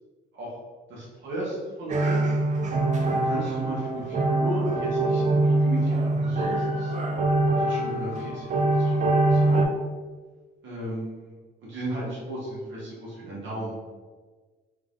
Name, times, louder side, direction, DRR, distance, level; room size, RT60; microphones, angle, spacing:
voice 1, 0.9-2.2 3.1-6.9 7.6-9.6 10.6-11.3 11.6-13.7, right 1 dB, 70° right, -6 dB, 1.1 m, -35 dB
sound 1, 1.9-9.6, right 2 dB, 40° right, 0.5 m, -24 dB
3.5 x 2.4 x 3.5 m, 1.4 s
cardioid pair, 90°, 20 cm